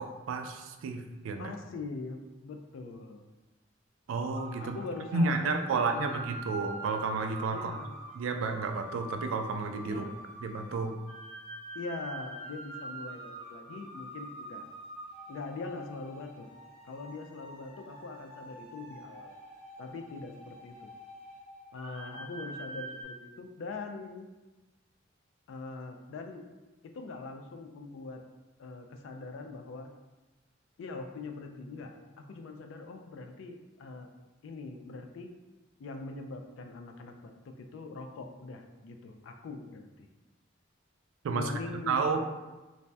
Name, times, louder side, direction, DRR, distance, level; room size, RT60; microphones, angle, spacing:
voice 1, 0.0-1.5 4.1-4.8 5.1-7.8 8.1-10.0 10.4-10.9 41.2-41.5 41.9-42.3, right 4 dB, 85° right, 6 dB, 0.3 m, -31 dB
voice 2, 1.4-3.3 4.6-6.3 7.5-8.0 9.8-10.2 11.7-14.7 15.3-16.5 16.8-19.3 19.8-20.8 21.7-24.3 25.5-26.4 26.8-28.2 28.6-29.9 30.8-34.1 34.4-35.3 35.8-40.1 41.3-42.3, left 3 dB, 70° left, 5 dB, 0.3 m, -42 dB
sound 1, 4.3-23.0, right 2 dB, 30° left, 0.6 m, -45 dB
2.6 x 2.1 x 3.3 m, 1.1 s
head